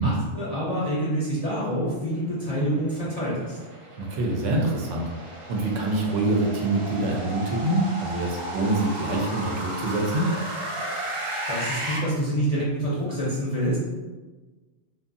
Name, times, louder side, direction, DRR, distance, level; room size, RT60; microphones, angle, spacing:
voice 1, 0.0-3.6 11.5-13.8, equal, 40° left, -8 dB, 0.5 m, -27 dB
sound 1, 2.4-12.0, right 1 dB, 55° right, 0.3 m, -34 dB
voice 2, 4.0-5.1 5.5-10.3, right 2 dB, 75° right, 0 dB, 0.9 m, -25 dB
2.6 x 2.4 x 2.5 m, 1.2 s
omnidirectional pair, 1.3 m